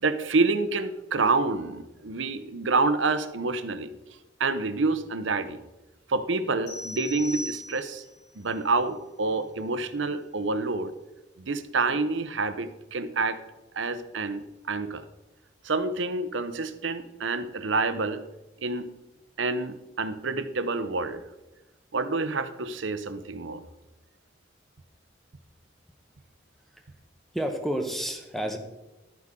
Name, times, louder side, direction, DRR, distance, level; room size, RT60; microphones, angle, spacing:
voice 1, 0.0-3.9 4.4-5.6 6.1-8.0 8.4-10.9 11.4-13.4 13.7-15.0 15.6-18.2 18.6-18.9 19.4-21.2 21.9-23.6, right 3 dB, 90° right, 11 dB, 0.8 m, -28 dB
sound 1, 6.7-8.2, left 1 dB, 75° left, 4.4 m, -38 dB
voice 2, 27.3-28.6, equal, ahead, 4 dB, 1.0 m, -30 dB
12.0 x 9.4 x 3.7 m, 1.0 s
head